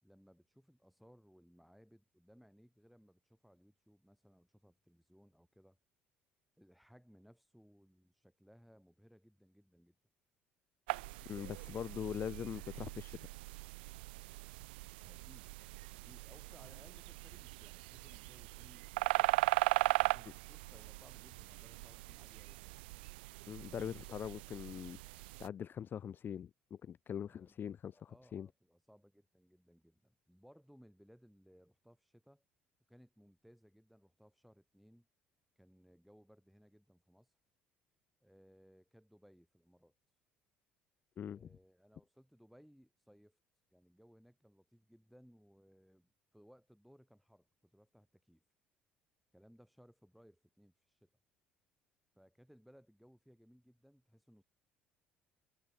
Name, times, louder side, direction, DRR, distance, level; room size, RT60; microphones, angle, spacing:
voice 1, 0.0-5.8 6.6-10.0 15.0-15.5 15.9-19.4 20.0-22.8 27.2-27.6 27.9-32.4 32.9-35.1 35.6-37.3 38.2-39.9 41.2-43.4 43.7-48.4 49.3-51.1 52.2-54.4, equal, ahead, 5.2 m, -64 dB
sound 1, 10.9-25.5, right 22 dB, 75° right, 0.6 m, -39 dB
voice 2, 11.3-13.2 23.5-28.5 41.2-41.5, left 8 dB, 40° left, 0.3 m, -43 dB
hypercardioid pair, 60°, 5 cm